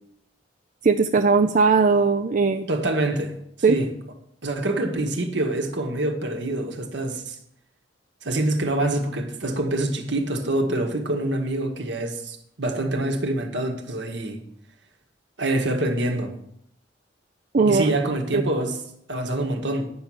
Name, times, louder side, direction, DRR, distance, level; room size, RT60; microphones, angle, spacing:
voice 1, 0.8-2.7 3.6-3.8 17.5-18.0 18.3-18.4, right 4 dB, 45° right, 0.5 m, -19 dB
voice 2, 2.7-3.4 3.7-3.9 4.4-7.4 8.2-14.4 15.4-16.3 17.7-18.8 19.1-19.9, right 1 dB, 65° right, 1.7 m, -25 dB
9.6 x 6.3 x 8.7 m
head